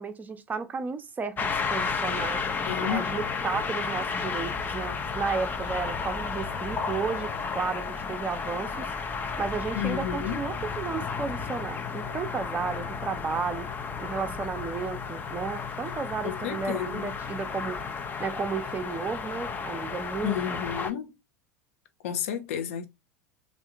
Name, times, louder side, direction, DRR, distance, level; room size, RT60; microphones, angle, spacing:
voice 1, 0.0-2.4 2.8-7.3 7.5-8.9 9.4-13.7 14.0-17.8 18.2-20.6, right 5 dB, 20° right, 0.7 m, -33 dB
sound 1, 1.4-20.9, left 5 dB, 25° left, 0.6 m, -33 dB
voice 2, 2.7-3.1 9.7-10.4 16.2-17.1 20.2-21.1 22.0-22.9, left 10 dB, 65° left, 0.8 m, -31 dB
3.6 x 2.5 x 4.5 m
figure-of-eight pair, 80°, 8 cm